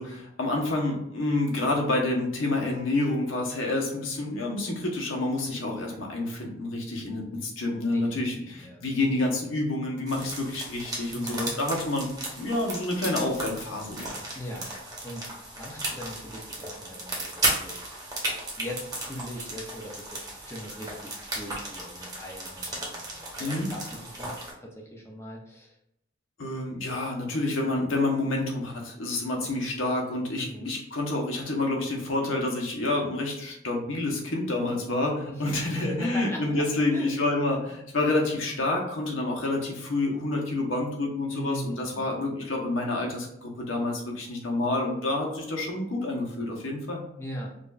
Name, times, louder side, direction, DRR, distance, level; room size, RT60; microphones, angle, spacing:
voice 1, 0.0-12.1 12.4-14.2 23.4-23.7 26.4-47.0, left 2 dB, 90° left, 0 dB, 1.0 m, -28 dB
voice 2, 7.9-8.8 11.1-11.6 14.3-14.7 15.0-15.2 15.6-17.8 18.6-25.8 30.4-30.7 35.2-36.7 36.9-37.1 41.3-42.1 47.2-47.5, equal, 15° left, -1 dB, 0.5 m, -40 dB
sound 1, 10.1-24.5, right 2 dB, 20° right, 0.9 m, -35 dB
5.0 x 2.5 x 2.4 m, 0.78 s
head